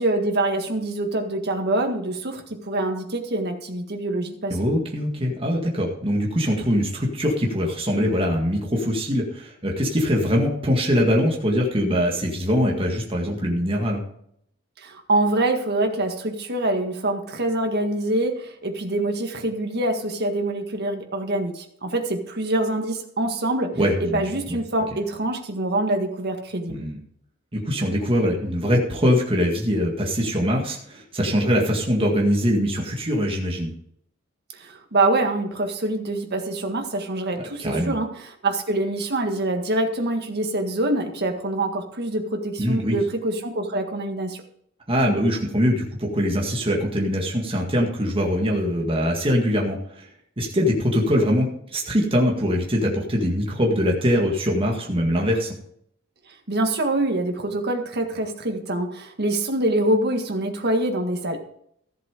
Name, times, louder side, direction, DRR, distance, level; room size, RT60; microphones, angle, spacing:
voice 1, 0.0-4.6 14.8-23.7 24.0-26.8 34.6-44.4 56.5-61.5, right 2 dB, 50° right, 4 dB, 1.8 m, -25 dB
voice 2, 4.5-14.0 23.7-24.2 24.5-24.6 26.7-27.0 27.5-33.7 37.6-38.0 42.6-43.0 44.9-50.1 50.4-55.6, equal, 25° right, -1 dB, 1.9 m, -22 dB
14.5 x 7.6 x 5.0 m, 0.69 s
head